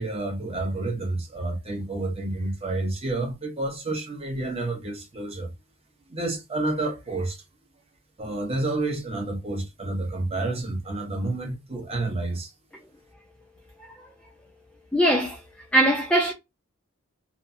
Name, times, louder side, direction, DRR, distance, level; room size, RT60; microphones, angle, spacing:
voice 1, 0.0-5.5 6.1-7.4 8.2-12.5, right 2 dB, 30° right, 0.7 m, -29 dB
voice 2, 14.9-15.4 15.7-16.3, right 1 dB, 5° left, 0.4 m, -21 dB
2.9 x 2.0 x 2.5 m
head